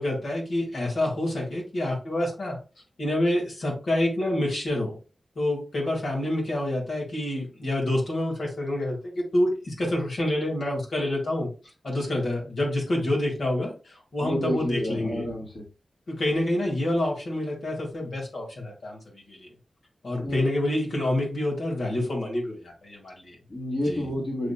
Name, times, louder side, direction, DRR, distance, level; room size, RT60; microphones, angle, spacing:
voice 1, 0.0-2.6 3.0-5.0 5.4-11.5 11.8-15.3 16.1-19.5 20.0-23.4 23.9-24.1, left 1 dB, 70° left, -2 dB, 2.0 m, -27 dB
voice 2, 14.2-15.6 20.2-20.5 23.5-24.5, left 1 dB, 45° left, -2 dB, 1.7 m, -29 dB
7.5 x 2.8 x 2.2 m, 0.34 s
wide cardioid pair, 90°, 0 cm